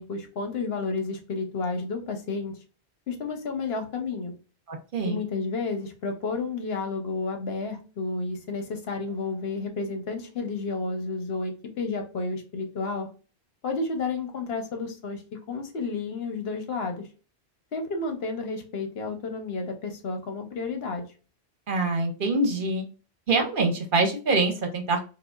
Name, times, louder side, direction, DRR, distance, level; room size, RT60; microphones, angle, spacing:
voice 1, 0.0-2.6 3.1-4.3 5.0-13.1 13.6-15.2 15.5-17.0 17.7-21.1, left 3 dB, 70° left, 5 dB, 1.0 m, -31 dB
voice 2, 4.7-5.2 21.7-22.8 23.3-25.0, right 3 dB, 55° right, 4 dB, 0.8 m, -25 dB
4.8 x 2.1 x 2.4 m, 0.35 s
omnidirectional pair, 1.1 m